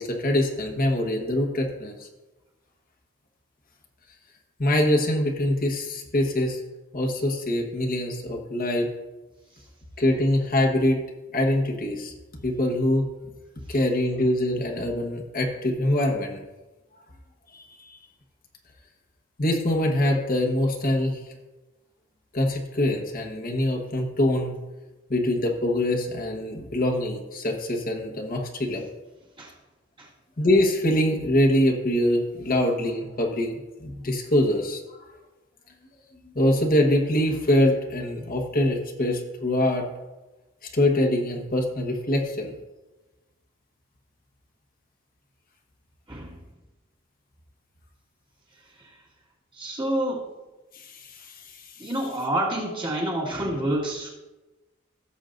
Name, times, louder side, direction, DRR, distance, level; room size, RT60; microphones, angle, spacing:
voice 1, 0.0-2.1 4.6-6.6 6.9-8.9 10.0-11.0 11.3-12.1 12.4-13.1 13.7-16.4 17.5-18.0 19.4-21.2 22.3-24.5 25.1-28.8 30.4-34.8 36.3-39.9 40.7-42.5 50.7-51.7, left 1 dB, 45° left, 1 dB, 1.3 m, -24 dB
voice 2, 49.5-50.3 51.8-54.1, right 1 dB, 25° right, -4 dB, 1.9 m, -28 dB
16.5 x 7.3 x 2.6 m, 1.1 s
head